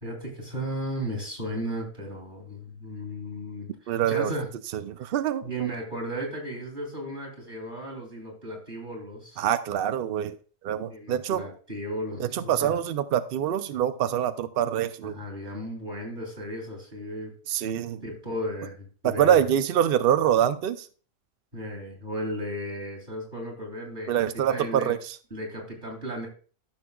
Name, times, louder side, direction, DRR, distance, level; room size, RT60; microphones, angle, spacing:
voice 1, 0.0-3.7 4.1-4.5 5.4-9.4 10.9-12.7 15.0-17.3 18.0-19.4 21.5-25.0 25.3-26.3, equal, 35° right, -1 dB, 3.0 m, -35 dB
voice 2, 3.9-4.3 4.7-5.7 9.4-10.4 10.6-11.5 12.2-15.2 17.5-18.0 19.0-20.9 24.1-25.2, right 10 dB, 85° right, 11 dB, 0.5 m, -25 dB
13.5 x 6.4 x 2.3 m, 0.40 s
omnidirectional pair, 1.5 m